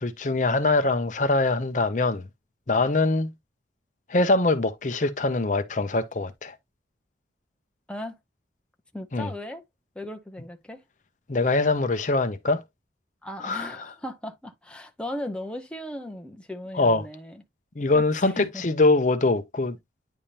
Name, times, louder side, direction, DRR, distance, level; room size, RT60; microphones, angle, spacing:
voice 1, 0.0-2.2 2.7-3.3 4.1-6.5 9.1-9.3 11.3-12.6 13.4-13.7 16.7-17.0 17.8-19.8, left 2 dB, 40° left, 0.6 m, -23 dB
voice 2, 8.9-9.6 10.0-10.8 13.2-17.4 17.9-18.6, left 1 dB, 5° left, 0.7 m, -37 dB
9.9 x 3.5 x 2.8 m
head